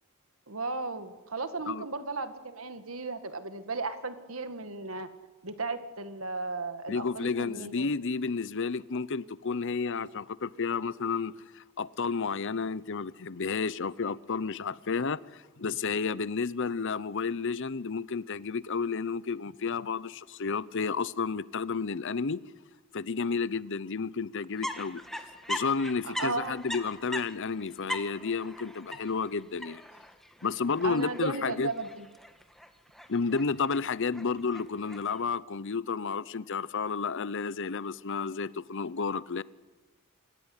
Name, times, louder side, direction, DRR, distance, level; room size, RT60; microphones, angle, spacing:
voice 1, 0.5-5.1 5.4-7.9 26.0-26.6 30.8-32.1, right 3 dB, 75° right, 2.0 m, -35 dB
voice 2, 6.9-22.4 22.9-25.0 25.5-29.8 30.4-31.7 33.1-39.4, left 5 dB, 60° left, 0.7 m, -31 dB
sound 1, 24.6-35.2, left 1 dB, ahead, 1.6 m, -41 dB
27.0 x 16.5 x 9.8 m
head